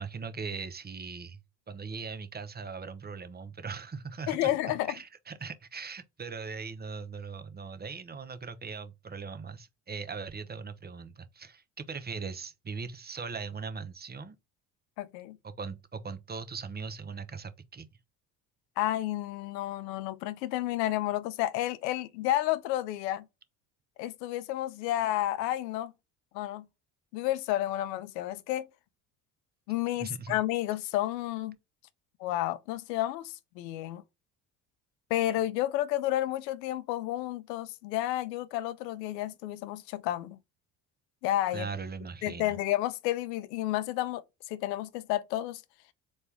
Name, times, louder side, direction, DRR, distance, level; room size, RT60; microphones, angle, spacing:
voice 1, 0.0-1.4 1.7-4.5 4.9-14.4 15.4-17.9 30.0-30.4 41.5-42.6, right 5 dB, 20° right, 0.6 m, -40 dB
voice 2, 4.3-4.9 15.0-15.4 18.8-23.3 24.0-25.9 26.3-26.7 27.1-28.7 29.7-31.6 32.2-34.0 35.1-40.4 41.2-41.7 42.2-45.6, left 14 dB, 85° left, 0.5 m, -31 dB
4.2 x 2.3 x 3.2 m
hypercardioid pair, 60°, 49 cm